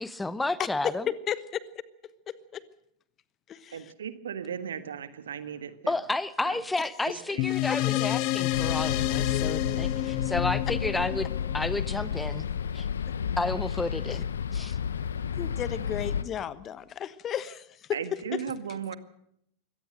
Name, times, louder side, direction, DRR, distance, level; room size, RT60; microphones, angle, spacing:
voice 1, 0.0-1.0 5.9-11.3 11.5-12.5 12.7-12.9 13.4-14.8, left 2 dB, 10° left, 19 dB, 0.8 m, -31 dB
voice 2, 0.6-1.4 2.3-2.6 3.5-3.9 14.1-14.2 15.3-17.9 18.3-18.4, left 9 dB, 30° left, 17 dB, 1.2 m, -34 dB
voice 3, 3.7-5.9 6.4-6.6 7.1-7.5 17.9-19.0, right 7 dB, 65° right, 12 dB, 1.6 m, -36 dB
sound 1, 7.4-12.2, left 17 dB, 45° left, 0.8 m, -29 dB
sound 2, 8.5-16.2, left 7 dB, 70° left, 1.2 m, -31 dB
24.0 x 18.0 x 6.5 m, 0.74 s
figure-of-eight pair, 90°, 0 cm